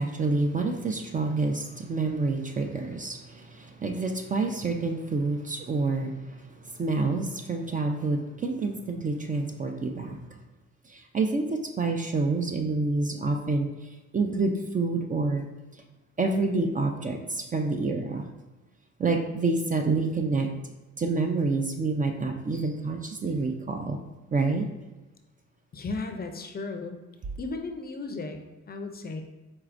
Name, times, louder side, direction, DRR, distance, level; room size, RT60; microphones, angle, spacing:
voice 1, 0.0-6.2 6.7-10.2 10.9-13.7 14.1-15.5 16.2-18.3 19.0-20.5 21.0-24.0 24.3-24.7, right 3 dB, 25° right, 4 dB, 0.4 m, -28 dB
voice 2, 25.7-27.0 27.4-28.4 28.7-29.2, left 3 dB, 30° left, 5 dB, 0.5 m, -35 dB
4.5 x 4.1 x 2.5 m, 1.1 s
cardioid pair, 90°, 30 cm